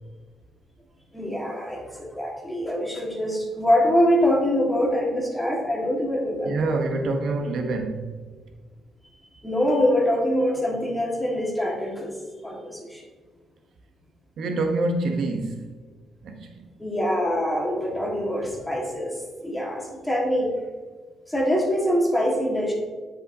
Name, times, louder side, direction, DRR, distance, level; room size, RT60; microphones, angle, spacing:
voice 1, 1.1-6.7 9.4-12.1 12.4-13.0 16.8-20.5 21.3-22.7, equal, 5° left, 1.7 m, -24 dB
voice 2, 6.4-8.2 14.4-15.7 16.2-16.5, right 2 dB, 70° right, 1.0 m, -26 dB
7.9 x 6.2 x 2.8 m
cardioid pair, 90°, 0 cm